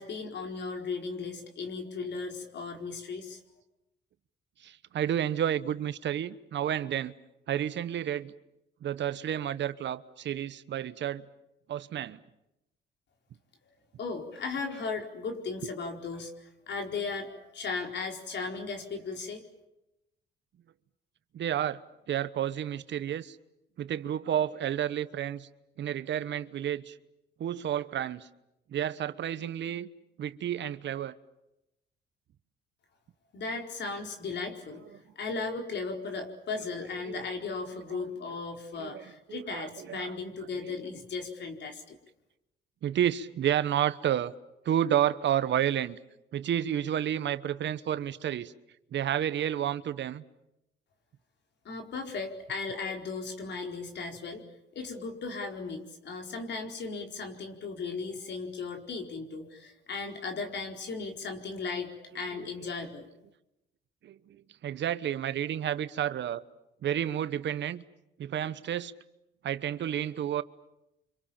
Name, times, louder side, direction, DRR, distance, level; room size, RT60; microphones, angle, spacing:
voice 1, 0.0-3.4 14.0-19.4 33.3-34.8 35.2-42.0 51.6-54.4 54.7-63.1, left 4 dB, 60° left, 4.7 m, -36 dB
voice 2, 4.6-7.1 7.5-8.3 8.8-11.3 11.7-12.2 21.3-21.8 22.1-23.4 23.8-25.5 25.8-27.0 27.4-28.3 28.7-29.9 30.2-31.2 34.7-34.9 36.5-37.3 37.7-38.4 38.7-40.5 42.8-44.3 44.6-46.0 46.3-48.5 48.9-50.2 62.3-62.7 64.0-66.4 66.8-67.8 68.2-68.9 69.4-70.4, right 10 dB, 65° right, 1.1 m, -31 dB
30.0 x 26.0 x 7.3 m
cardioid pair, 90°, 20 cm